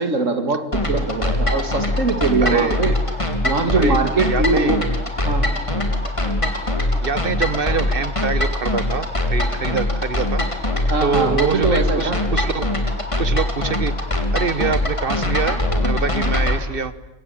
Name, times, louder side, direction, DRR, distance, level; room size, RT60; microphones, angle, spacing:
voice 1, 0.0-3.0 3.4-4.8 5.2-5.5 10.9-12.2, right 3 dB, 80° right, 8 dB, 2.4 m, -21 dB
sound 1, 0.7-16.6, left 1 dB, 25° left, 3.3 m, -22 dB
voice 2, 2.4-2.8 3.8-4.8 7.0-10.4 11.0-12.7 13.2-13.9 14.3-16.9, right 5 dB, 45° right, 15 dB, 1.5 m, -25 dB
26.0 x 24.0 x 9.1 m, 0.92 s
omnidirectional pair, 1.3 m